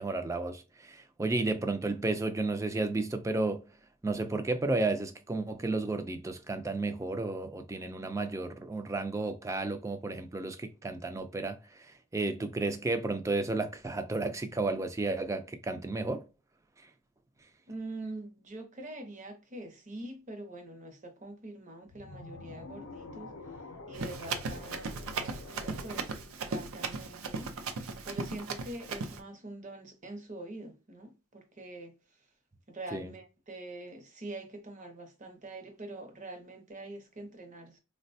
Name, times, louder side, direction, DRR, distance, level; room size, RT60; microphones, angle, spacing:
voice 1, 0.0-3.6 4.0-11.6 12.1-16.2 32.9-33.1, right 2 dB, 15° right, 0.3 m, -32 dB
voice 2, 17.7-23.4 23.9-26.2 26.5-27.5 28.0-31.9 32.7-37.8, right 2 dB, 35° right, 0.7 m, -44 dB
sound 1, 21.9-27.1, left 3 dB, 65° left, 0.5 m, -47 dB
Run, 23.9-29.2, right 4 dB, 75° right, 0.5 m, -37 dB
3.9 x 2.1 x 2.6 m
head